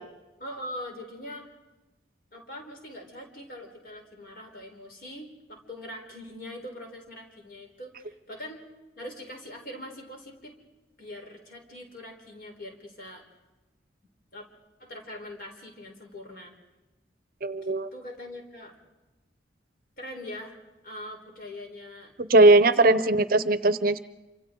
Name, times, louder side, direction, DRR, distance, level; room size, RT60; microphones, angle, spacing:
voice 1, 0.4-1.5 2.3-8.6 9.0-10.6 11.0-13.2 14.3-14.5 14.8-16.5 17.6-18.7 20.0-20.6 20.8-22.1 22.8-23.0, left 1 dB, 50° left, 2 dB, 4.2 m, -42 dB
voice 2, 17.4-17.9 22.2-24.0, right 2 dB, 50° right, 13 dB, 0.7 m, -19 dB
28.0 x 26.0 x 3.8 m, 1.1 s
head